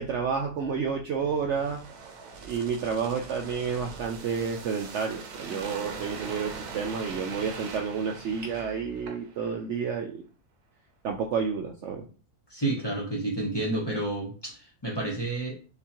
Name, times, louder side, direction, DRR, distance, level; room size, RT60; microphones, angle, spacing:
voice 1, 0.0-1.8 2.4-10.2 11.0-12.0, right 6 dB, 65° right, 2 dB, 0.7 m, -30 dB
sound 1, 1.2-9.5 9.9-10.0, right 4 dB, 85° right, 1.3 m, -41 dB
voice 2, 12.5-15.5, right 2 dB, 20° left, -2 dB, 0.8 m, -30 dB
6.9 x 2.4 x 2.9 m, 0.37 s
omnidirectional pair, 1.6 m